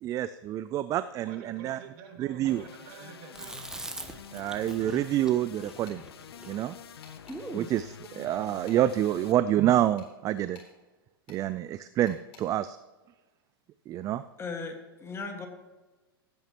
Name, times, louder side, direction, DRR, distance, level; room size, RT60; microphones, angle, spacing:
voice 1, 0.0-1.8 2.2-2.6 4.3-6.0 6.5-6.8 7.5-10.6 11.3-12.8 13.9-14.2, right 12 dB, 25° right, 14 dB, 0.3 m, -27 dB
voice 2, 1.2-3.8, right 6 dB, 50° right, 3 dB, 2.2 m, -48 dB
sound 1, 2.5-9.3, left 8 dB, 90° left, 0.6 m, -48 dB
Chewing mastication, 3.3-7.7, right 2 dB, 5° right, 0.9 m, -43 dB
sound 2, 5.1-5.5 5.8-6.0 7.0-7.4 8.0-9.1 10.0-10.7 11.3-11.4 12.1-12.4, left 5 dB, 45° left, 3.9 m, -55 dB
voice 3, 14.4-15.5, left 4 dB, 20° left, 4 dB, 1.7 m, -37 dB
16.0 x 9.2 x 2.9 m, 1.2 s
hypercardioid pair, 120°, 13 cm